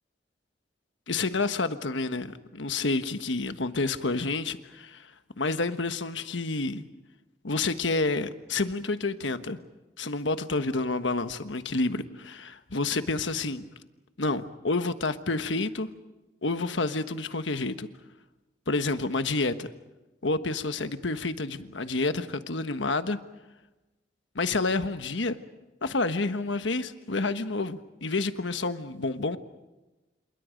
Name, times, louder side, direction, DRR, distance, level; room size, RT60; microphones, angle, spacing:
voice 1, 1.1-5.1 5.4-6.8 7.4-9.6 10.0-13.7 14.2-15.9 16.4-17.9 18.7-19.7 20.2-23.2 24.3-25.4 25.8-29.4, left 3 dB, 80° left, 1.3 m, -29 dB
30.0 x 27.5 x 5.2 m
head